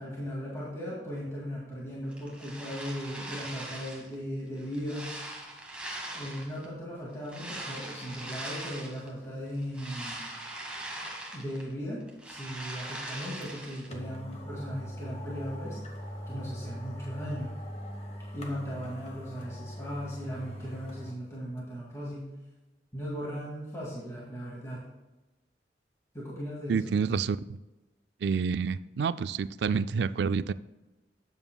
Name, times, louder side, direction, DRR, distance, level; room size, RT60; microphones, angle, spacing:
voice 1, 0.0-5.1 6.1-10.3 11.3-12.0 12.2-15.8 16.3-17.5 18.3-22.3 22.9-24.8 26.1-26.9, equal, 15° left, 2.2 m, -37 dB
sound 1, 2.1-4.1 4.6-6.7 7.3-9.1 9.5-11.7 12.0-13.9, right 1 dB, 5° right, 1.5 m, -41 dB
sound 2, 13.4-13.5 13.9-21.2 21.6-21.7, equal, 35° left, 1.2 m, -41 dB
voice 2, 26.7-27.4 28.2-30.5, right 5 dB, 70° right, 0.3 m, -28 dB
12.5 x 8.9 x 2.3 m
head